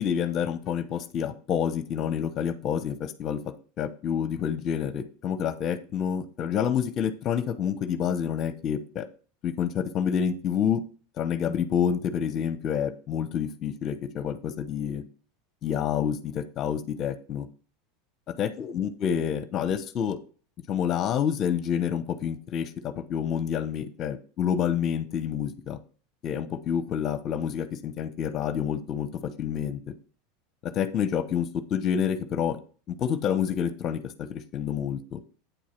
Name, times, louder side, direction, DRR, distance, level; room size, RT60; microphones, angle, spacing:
voice 1, 0.0-3.4 3.8-9.1 9.4-10.8 11.2-15.0 15.6-17.5 18.4-20.2 20.7-25.8 26.2-29.8 30.6-32.6 33.0-35.2, left 8 dB, 45° left, 12 dB, 0.8 m, -28 dB
9.1 x 4.6 x 4.4 m, 0.39 s
supercardioid pair, 110°, 0 cm